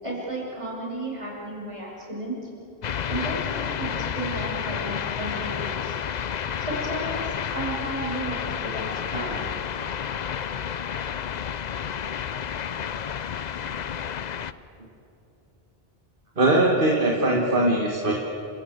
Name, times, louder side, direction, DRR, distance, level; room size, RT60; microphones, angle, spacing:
voice 1, 0.0-2.5 3.1-5.9 6.6-9.4, right 1 dB, 30° right, -3 dB, 6.3 m, -33 dB
sound 1, 2.8-14.5, left 8 dB, 50° left, 0.6 m, -30 dB
voice 2, 16.4-18.1, right 1 dB, 60° right, 0 dB, 1.9 m, -21 dB
28.0 x 16.5 x 8.1 m, 2.9 s
omnidirectional pair, 1.0 m